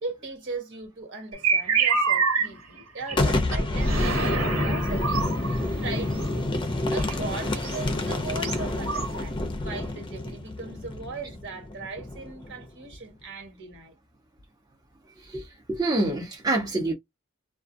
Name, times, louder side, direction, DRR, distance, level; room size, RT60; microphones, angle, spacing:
voice 1, 0.0-5.2 5.8-6.5 6.9-13.9, right 3 dB, 60° right, 1.4 m, -38 dB
sound 1, 1.3-2.5 2.8-3.2 3.5-3.6 3.8-6.4 7.0-9.3, right 4 dB, 85° right, 1.4 m, -27 dB
Boom, 3.1-12.7, left 2 dB, 25° left, 0.5 m, -28 dB
voice 2, 15.7-16.9, right 2 dB, 20° right, 0.8 m, -26 dB
2.4 x 2.3 x 2.6 m
head